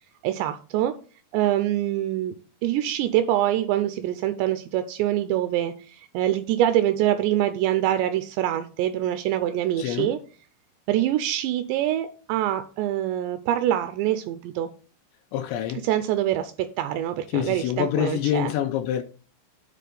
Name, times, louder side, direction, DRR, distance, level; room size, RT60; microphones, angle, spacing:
voice 1, 0.2-1.0 1.3-2.3 2.6-5.8 6.1-10.2 10.9-14.7 15.8-18.5, right 12 dB, 85° right, 2.6 m, -24 dB
voice 2, 9.8-10.2 15.3-15.8 17.3-19.0, left 11 dB, 80° left, 2.7 m, -26 dB
9.3 x 3.6 x 6.8 m
omnidirectional pair, 5.3 m